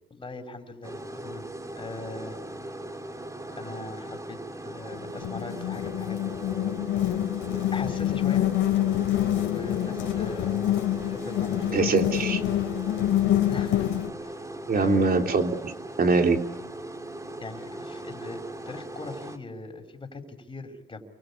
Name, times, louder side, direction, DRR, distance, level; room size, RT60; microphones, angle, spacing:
voice 1, 0.1-1.4 1.7-2.4 3.6-6.7 7.0-7.1 7.7-8.4 9.4-10.7 11.1-12.1 13.5-13.9 14.2-14.5 14.7-15.2 17.4-21.0, left 3 dB, 25° left, 4 dB, 5.5 m, -40 dB
sound 1, 0.8-19.4, right 1 dB, 15° right, 2.6 m, -39 dB
sound 2, 4.9-14.1, left 13 dB, 85° left, 3.4 m, -26 dB
voice 2, 11.7-12.4 14.7-15.7 16.0-16.4, right 4 dB, 50° right, 5 dB, 3.5 m, -23 dB
29.0 x 23.5 x 8.7 m, 1.0 s
cardioid pair, 90°, 20 cm